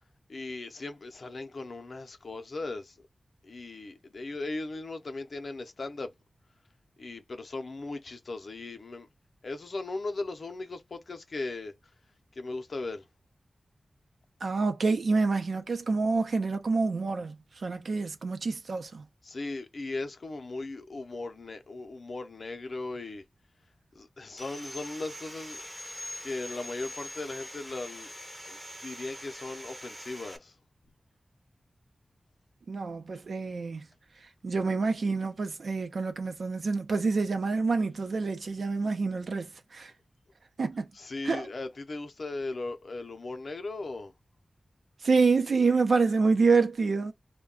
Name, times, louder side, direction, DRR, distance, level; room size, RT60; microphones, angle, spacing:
voice 1, 0.3-3.0 3.4-6.1 7.0-9.1 9.4-11.9 12.3-13.1 19.2-23.2 23.9-25.6 26.2-28.1 28.5-30.6 40.9-44.1, left 2 dB, 65° left, 0.6 m, -38 dB
voice 2, 14.4-19.0 32.7-33.9 34.4-39.9 40.6-40.9 41.2-41.5 45.0-47.1, right 4 dB, 75° right, 0.6 m, -27 dB
Sawing, 24.4-30.4, equal, ahead, 0.6 m, -43 dB
2.3 x 2.2 x 3.7 m
cardioid pair, 55°, 0 cm